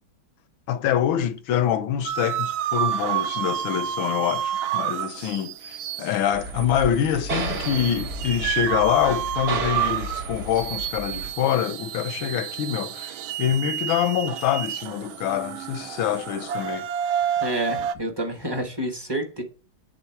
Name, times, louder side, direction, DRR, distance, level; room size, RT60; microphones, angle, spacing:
voice 1, 0.7-16.9, left 10 dB, 80° left, 1.3 m, -25 dB
sound 1, 2.0-17.9, right 10 dB, 80° right, 1.4 m, -30 dB
sound 2, 6.3-11.3, right 2 dB, 50° right, 1.8 m, -32 dB
voice 2, 17.3-19.4, right 1 dB, 20° right, 0.7 m, -29 dB
8.9 x 3.7 x 4.5 m
omnidirectional pair, 2.3 m